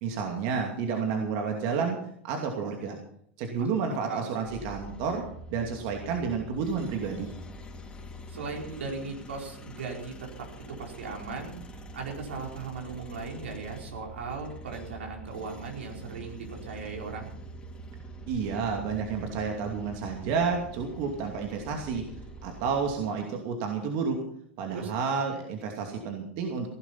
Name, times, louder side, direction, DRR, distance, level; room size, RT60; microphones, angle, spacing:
voice 1, 0.0-3.0 3.4-5.2 5.5-7.3 18.3-22.1 22.4-24.2 24.6-26.7, right 5 dB, 55° right, 2 dB, 2.5 m, -30 dB
sound 1, 4.5-23.0, right 1 dB, 15° left, 3.7 m, -45 dB
voice 2, 8.3-17.3 24.7-24.9, right 4 dB, 85° right, 0 dB, 4.8 m, -38 dB
17.0 x 11.5 x 5.8 m, 0.69 s
hypercardioid pair, 100°, 6 cm